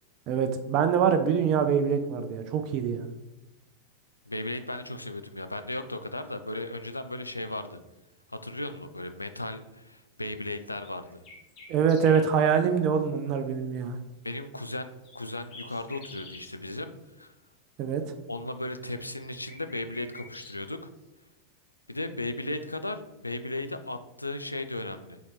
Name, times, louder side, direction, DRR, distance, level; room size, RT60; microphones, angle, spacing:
voice 1, 0.3-3.1 11.7-14.0 17.8-18.0, right 7 dB, 40° right, 7 dB, 0.4 m, -24 dB
voice 2, 4.3-7.8 8.3-11.2 14.2-16.9 17.2-17.3 18.3-20.9 21.9-25.2, left 2 dB, 85° left, 9 dB, 0.3 m, -36 dB
sound 1, 10.8-12.3 15.0-16.5 18.8-20.6, left 3 dB, 40° left, 1.5 m, -48 dB
4.1 x 4.0 x 3.3 m, 1.0 s
figure-of-eight pair, 90°, 0 cm